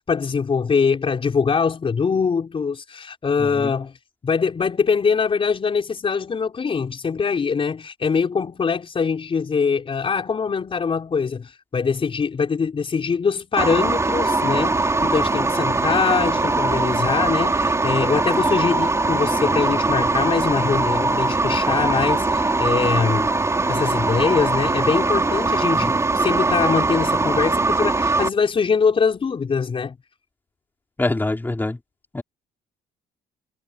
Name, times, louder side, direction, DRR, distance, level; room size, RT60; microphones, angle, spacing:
voice 1, 0.0-3.9 4.2-23.3 23.7-29.9, left 5 dB, 30° left, 5.4 m, -23 dB
voice 2, 3.4-3.7 25.8-25.9 31.0-31.8 32.1-32.2, left 2 dB, 10° left, 4.4 m, -25 dB
sound 1, 13.6-28.3, right 3 dB, 15° right, 5.4 m, -21 dB
cardioid pair, 110°, 17 cm